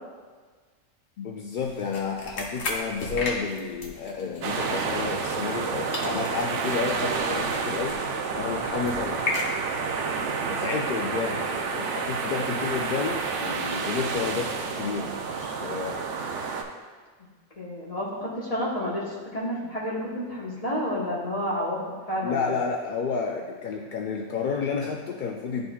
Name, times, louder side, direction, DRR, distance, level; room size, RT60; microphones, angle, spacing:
voice 1, 1.2-8.0 8.3-9.2 10.4-16.0 22.2-25.7, left 5 dB, 65° left, 1 dB, 0.5 m, -31 dB
sound 1, 1.5-5.7 5.9-10.0, left 2 dB, 80° left, 1.3 m, -36 dB
sound 2, 4.4-16.6, right 5 dB, 70° right, 0.9 m, -29 dB
voice 2, 17.6-22.5, equal, 30° left, -6 dB, 1.2 m, -30 dB
11.0 x 3.9 x 2.3 m, 1.5 s
omnidirectional pair, 1.3 m